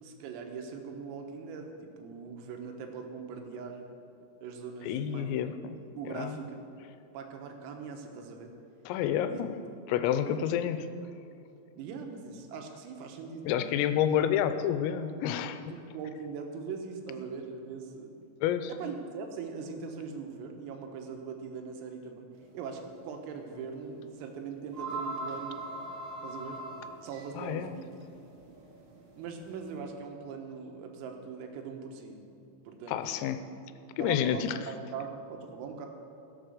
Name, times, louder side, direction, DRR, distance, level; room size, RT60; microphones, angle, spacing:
voice 1, 0.0-4.0 4.4-5.4 5.9-6.6 7.1-8.5 9.3-9.4 9.9-10.0 10.2-10.4 11.8-13.8 15.7-18.1 18.6-22.3 22.5-25.6 26.2-26.6 27.0-27.9 29.2-32.2 32.7-33.3 33.9-35.9, right 5 dB, 80° right, 3 dB, 3.9 m, -41 dB
voice 2, 4.8-5.8 6.0-6.4 8.9-9.5 9.9-10.9 13.5-15.6 18.4-18.7 27.4-27.8 32.9-33.4 34.0-34.5, left 10 dB, 85° left, 10 dB, 3.4 m, -29 dB
sound 1, 22.4-22.6 23.0-23.1 24.2-24.3 24.5-29.8, right 2 dB, 50° right, 2.6 m, -41 dB
17.0 x 8.1 x 6.5 m, 2.7 s
omnidirectional pair, 6.0 m